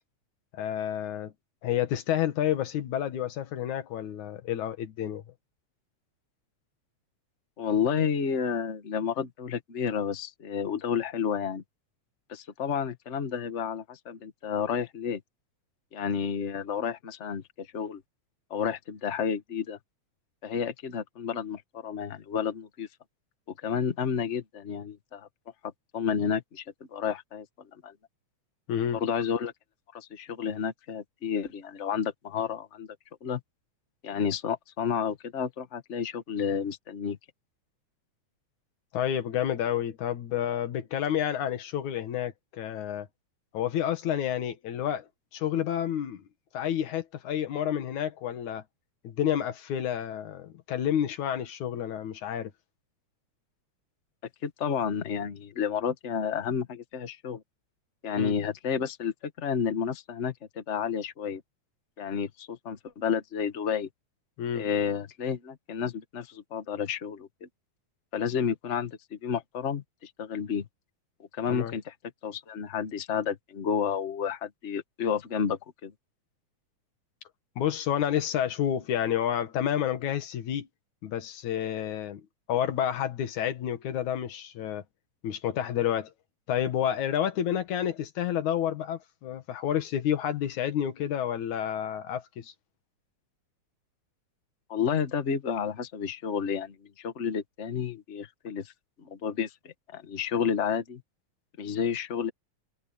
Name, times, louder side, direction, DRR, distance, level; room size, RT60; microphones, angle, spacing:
voice 1, 0.5-1.3 1.6-5.2 28.7-29.0 38.9-43.1 43.5-46.2 46.5-48.6 49.0-52.5 58.2-58.3 64.4-64.7 71.5-71.7 77.6-80.7 81.0-82.2 82.5-84.8 85.2-86.1 86.5-92.5, left 10 dB, 80° left, 3.0 m, -30 dB
voice 2, 7.6-11.6 12.3-15.2 15.9-18.0 18.5-19.8 20.4-22.9 23.6-25.3 25.6-26.6 26.9-27.4 27.8-27.9 28.9-29.5 29.9-32.9 33.2-33.4 34.0-37.2 54.4-57.4 58.0-61.4 62.0-63.9 64.5-67.5 68.1-70.7 71.3-71.9 72.2-75.9 94.7-98.7 99.0-101.0 101.6-102.3, left 7 dB, 40° left, 1.0 m, -31 dB
omnidirectional pair, 3.4 m